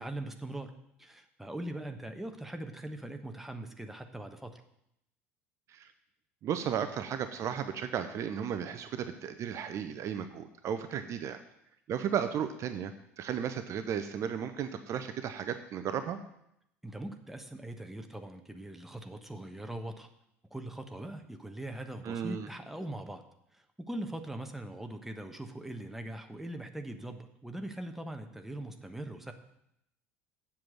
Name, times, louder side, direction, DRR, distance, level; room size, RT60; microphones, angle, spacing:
voice 1, 0.0-4.6 16.8-20.1 20.5-23.2 23.5-29.3, right 1 dB, 5° right, 5 dB, 1.1 m, -41 dB
voice 2, 6.4-11.4 11.9-12.9 13.2-16.2 22.0-22.5, right 8 dB, 40° right, 9 dB, 0.7 m, -34 dB
7.7 x 7.1 x 7.6 m, 0.79 s
figure-of-eight pair, 65°, 8 cm